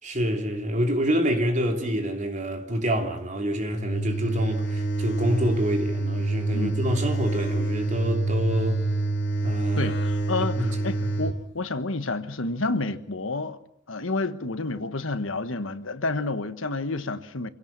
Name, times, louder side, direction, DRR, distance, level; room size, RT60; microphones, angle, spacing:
voice 1, 0.0-8.8 9.4-9.9 10.6-10.7, equal, 40° right, 3.3 m, -27 dB
sound 1, 3.7-11.4, right 2 dB, 65° left, 3.7 m, -27 dB
voice 2, 9.8-13.6 13.9-17.5, left 3 dB, 80° left, 1.4 m, -29 dB
26.5 x 17.0 x 7.5 m
head